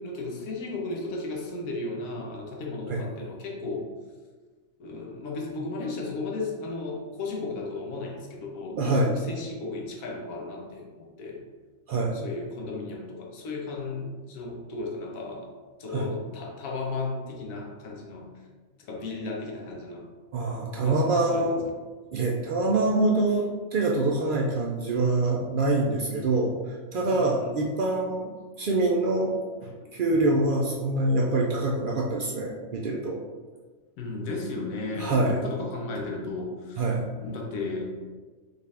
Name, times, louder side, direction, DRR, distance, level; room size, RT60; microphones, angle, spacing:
voice 1, 0.0-3.9 4.8-11.4 12.1-15.5 15.8-18.3 18.8-20.1 20.8-21.5 26.2-26.4 27.1-27.6 29.8-30.3 34.0-38.0, left 3 dB, 85° left, 0 dB, 1.2 m, -35 dB
voice 2, 8.7-9.1 11.9-12.2 15.9-16.1 20.3-21.6 22.1-26.5 26.9-28.3 28.6-29.3 29.6-33.2 35.0-35.4 36.8-37.1, right 2 dB, 85° right, -1 dB, 0.4 m, -25 dB
5.1 x 2.4 x 3.3 m, 1.4 s
omnidirectional pair, 1.4 m